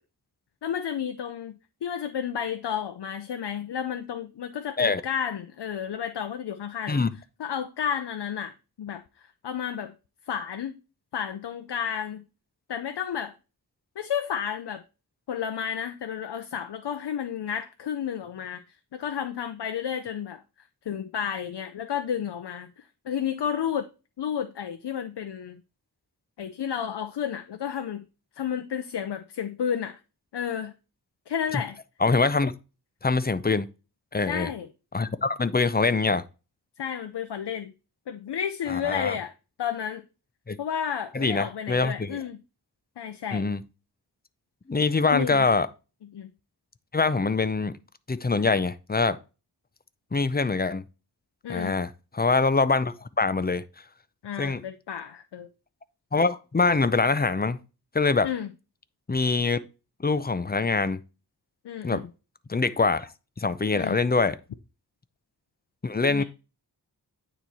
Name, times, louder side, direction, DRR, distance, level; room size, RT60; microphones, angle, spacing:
voice 1, 0.6-7.0 7.4-8.5 8.8-9.9 10.3-10.8 11.1-12.2 12.7-13.3 14.0-14.8 15.3-18.6 18.9-22.7 23.1-23.9 24.2-25.6 26.4-28.0 28.4-30.0 30.3-30.7 31.3-31.8 34.3-34.7 36.8-37.7 38.1-39.3 39.6-40.0 40.6-42.4 43.0-43.4 45.0-45.5 46.1-46.3 51.4-51.8 54.2-55.5 58.2-58.5 61.6-62.1 63.7-64.0 66.1-66.2, left 8 dB, 85° left, 0.6 m, -32 dB
voice 2, 32.0-32.5 33.0-33.7 34.1-34.5 34.9-36.2 38.7-39.2 40.5-40.6 41.1-42.2 43.3-43.6 44.7-45.7 46.9-47.7 48.1-49.2 50.1-50.8 51.5-53.6 54.4-54.6 56.1-57.6 57.9-58.3 59.1-59.6 60.0-61.0 61.8-62.1 62.5-63.1 63.4-64.4 65.8-66.2, left 4 dB, 25° left, 0.5 m, -24 dB
9.2 x 3.1 x 4.2 m
wide cardioid pair, 60°, 40 cm